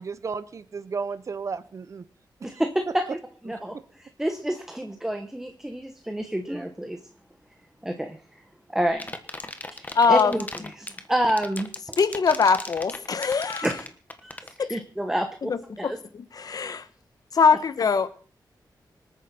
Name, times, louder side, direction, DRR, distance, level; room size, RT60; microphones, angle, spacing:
voice 1, 0.0-2.0, right 5 dB, 45° right, 14 dB, 0.6 m, -33 dB
voice 2, 2.4-3.2 3.4-7.0 7.8-8.4 8.7-9.1 9.7-11.7 13.6-13.9 14.2-16.0, right 1 dB, 5° right, 5 dB, 1.1 m, -29 dB
sound 1, 8.9-14.6, left 2 dB, 20° left, 1.3 m, -36 dB
voice 3, 9.9-10.3 12.0-13.7 14.6-14.7 15.4-15.6 15.8-15.9 16.4-16.8 17.3-18.1, left 5 dB, 55° left, 12 dB, 1.1 m, -21 dB
25.5 x 9.1 x 4.3 m, 0.43 s
wide cardioid pair, 165°, 8 cm